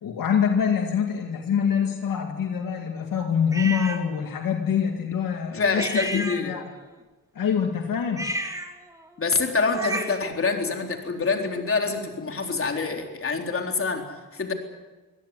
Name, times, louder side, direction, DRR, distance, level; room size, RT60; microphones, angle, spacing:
voice 1, 0.0-5.8 6.1-6.7 7.3-8.3, left 7 dB, 70° left, 4 dB, 2.3 m, -25 dB
sound 1, 3.5-4.0 5.8-6.8 8.1-10.3, right 1 dB, 10° right, 2.5 m, -33 dB
voice 2, 5.5-6.5 9.2-14.5, left 4 dB, 40° left, 3 dB, 4.1 m, -26 dB
25.0 x 17.0 x 9.7 m, 1.2 s
cardioid pair, 105°, 34 cm